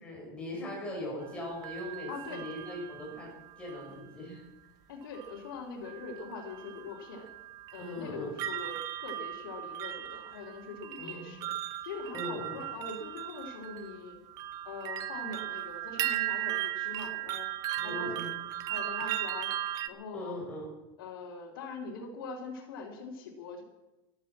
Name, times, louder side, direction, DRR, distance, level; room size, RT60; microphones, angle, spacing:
voice 1, 0.0-4.4 7.8-8.3 11.0-11.4 12.1-12.6 17.8-18.3 20.1-20.7, left 1 dB, 10° left, -3 dB, 6.8 m, -40 dB
sound 1, 1.2-4.0 5.1-5.6 5.9-19.9, right 13 dB, 30° right, 0.8 m, -37 dB
voice 2, 2.1-2.4 4.9-7.3 7.7-11.5 11.8-14.2 14.6-17.5 17.8-18.3 18.7-19.5 19.8-20.4 21.0-23.6, left 4 dB, 85° left, -4 dB, 3.3 m, -42 dB
14.0 x 12.5 x 7.5 m, 1.0 s
supercardioid pair, 165°, 12 cm